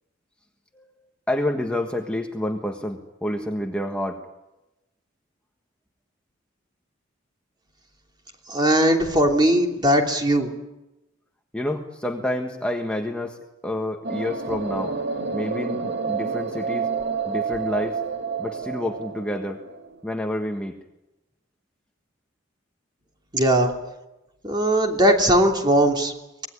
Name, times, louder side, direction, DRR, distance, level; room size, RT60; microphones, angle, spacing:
voice 1, 1.3-4.2 11.5-13.4 13.6-14.9 15.3-16.9 17.3-18.0 18.4-19.6 20.0-20.8, left 1 dB, 5° left, 2 dB, 1.5 m, -28 dB
voice 2, 8.5-10.5 23.3-23.7 24.4-26.1, right 1 dB, 25° right, 2 dB, 3.1 m, -19 dB
sound 1, 14.0-19.9, right 5 dB, 60° right, 1.9 m, -29 dB
25.0 x 19.5 x 9.9 m, 1.0 s
head